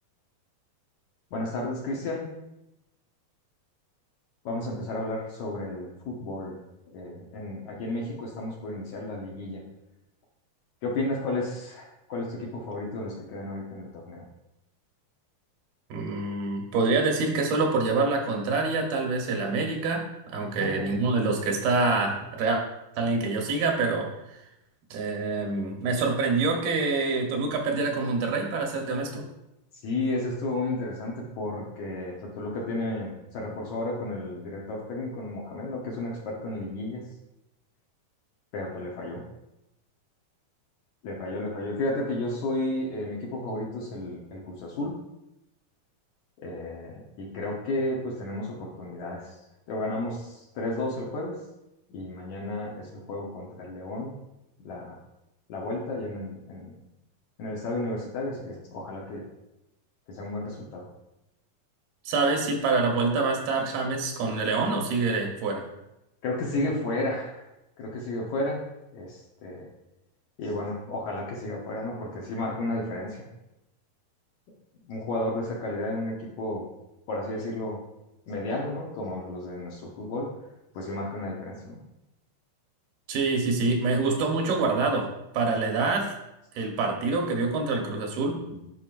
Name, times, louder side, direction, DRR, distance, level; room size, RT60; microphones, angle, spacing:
voice 1, 1.3-2.3 4.5-6.6 6.9-9.6 10.8-14.2 20.4-21.0 29.8-37.0 38.5-39.2 41.0-44.9 46.4-49.4 49.7-51.3 51.9-54.1 54.6-55.0 55.5-56.7 57.4-59.2 60.1-60.9 66.2-67.5 67.8-68.6 68.9-69.7 70.4-73.3 74.8-76.7 77.1-77.8 78.3-80.3 80.7-81.8, left 2 dB, 65° left, -2 dB, 2.0 m, -32 dB
voice 2, 15.9-22.6 23.0-24.1 24.9-29.2 62.1-65.6 83.1-85.1 85.3-86.1 86.6-88.6, right 3 dB, 80° right, 1 dB, 2.8 m, -26 dB
10.5 x 5.4 x 2.5 m, 0.90 s
omnidirectional pair, 4.2 m